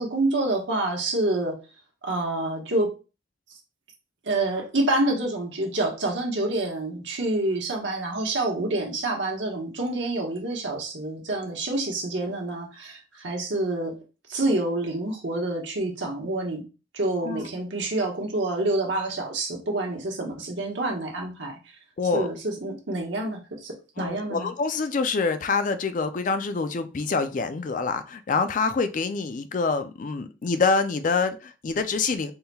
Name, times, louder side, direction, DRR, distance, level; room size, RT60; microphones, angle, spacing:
voice 1, 0.0-1.6 2.0-2.9 4.2-14.0 14.3-16.6 16.9-21.5 22.1-24.5, right 2 dB, 70° right, 0 dB, 1.2 m, -27 dB
voice 2, 22.0-22.3 24.0-32.3, left 4 dB, 45° left, 10 dB, 0.4 m, -26 dB
4.1 x 3.7 x 2.3 m, 0.32 s
head